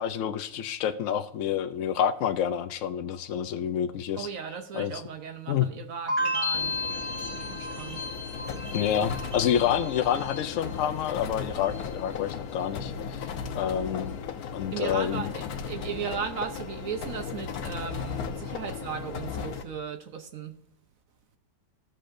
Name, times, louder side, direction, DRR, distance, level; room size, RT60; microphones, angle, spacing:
voice 1, 0.0-4.3 4.7-4.9 5.5-5.7 8.7-13.2 13.6-14.2 14.5-15.3, left 9 dB, 65° left, 0.9 m, -28 dB
voice 2, 4.2-6.8 7.1-8.0 14.7-20.6, right 7 dB, 65° right, 1.1 m, -36 dB
sound 1, 6.1-11.1 11.4-12.0, left 1 dB, 25° right, 2.3 m, -34 dB
sound 2, 6.5-19.6, left 6 dB, 85° left, 1.3 m, -36 dB
15.5 x 6.5 x 2.6 m
omnidirectional pair, 1.6 m